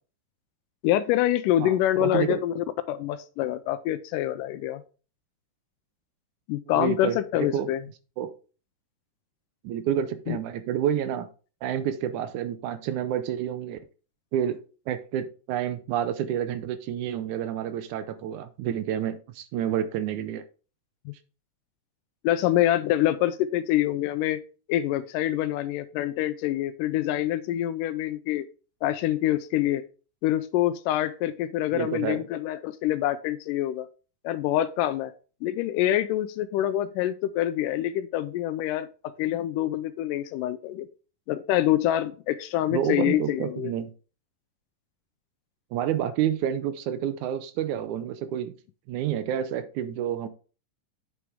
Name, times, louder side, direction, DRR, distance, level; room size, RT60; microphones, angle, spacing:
voice 1, 0.8-4.8 6.5-7.8 10.3-10.4 21.1-21.2 22.2-24.4 24.7-28.5 28.8-29.8 30.2-33.9 34.2-35.1 35.4-40.9 41.3-43.7, left 13 dB, 85° left, 2.2 m, -26 dB
voice 2, 1.6-2.4 6.7-7.7 8.2-8.3 9.6-11.3 11.6-13.8 14.3-20.4 31.7-32.2 42.7-43.9 45.7-48.6 48.9-50.3, right 10 dB, 75° right, 2.0 m, -29 dB
8.1 x 6.1 x 3.5 m
omnidirectional pair, 3.7 m